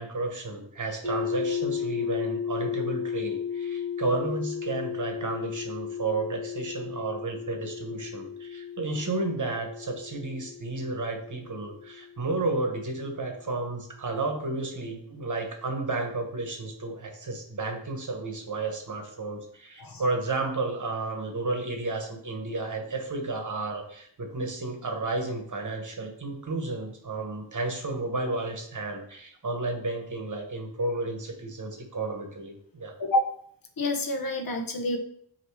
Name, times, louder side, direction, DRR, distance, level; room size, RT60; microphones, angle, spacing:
voice 1, 0.0-32.9, right 3 dB, 40° right, 3 dB, 1.1 m, -32 dB
sound 1, 1.0-13.0, left 8 dB, 10° left, 2.0 m, -34 dB
voice 2, 33.0-33.3 33.8-35.0, left 1 dB, 50° left, 4 dB, 0.8 m, -28 dB
8.4 x 3.0 x 4.6 m, 0.65 s
wide cardioid pair, 170°, 45 cm